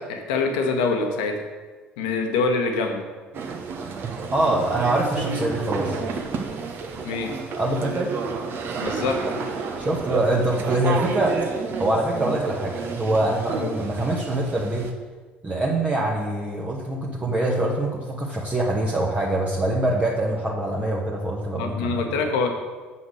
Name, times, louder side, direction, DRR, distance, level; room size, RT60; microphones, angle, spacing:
voice 1, 0.0-1.5 2.0-3.0 7.0-7.3 8.8-9.5 13.6-13.7 21.6-22.5, left 4 dB, 65° left, 4 dB, 1.2 m, -25 dB
sound 1, 3.3-14.9, right 4 dB, 45° right, 1.2 m, -30 dB
voice 2, 4.3-6.0 7.6-8.1 9.8-11.4 11.8-14.9 15.4-22.1, right 1 dB, 25° right, -4 dB, 1.5 m, -24 dB
8.0 x 5.8 x 6.4 m, 1.4 s
figure-of-eight pair, 55°, 5 cm